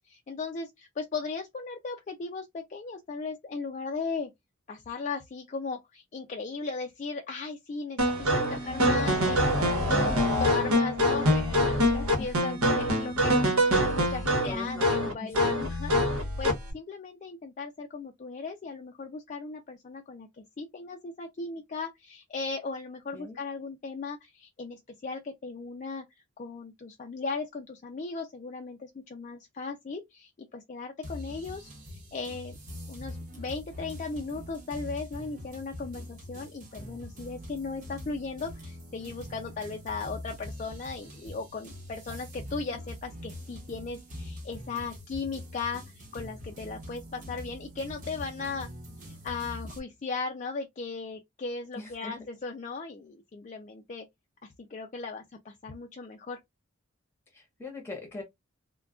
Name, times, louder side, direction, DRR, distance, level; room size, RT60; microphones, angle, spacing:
voice 1, 0.0-4.3 4.7-13.5 13.8-26.0 26.4-32.6 32.9-48.7 49.0-54.1 54.4-56.4, left 4 dB, 35° left, 0.3 m, -37 dB
sound 1, 8.0-16.7, equal, 85° right, 1.0 m, -25 dB
voice 2, 14.5-15.3 23.1-23.4 51.7-52.2 57.3-58.2, left 3 dB, 10° left, 0.8 m, -41 dB
sound 2, 31.0-49.8, left 1 dB, 35° right, 0.9 m, -43 dB
2.3 x 2.2 x 3.5 m
head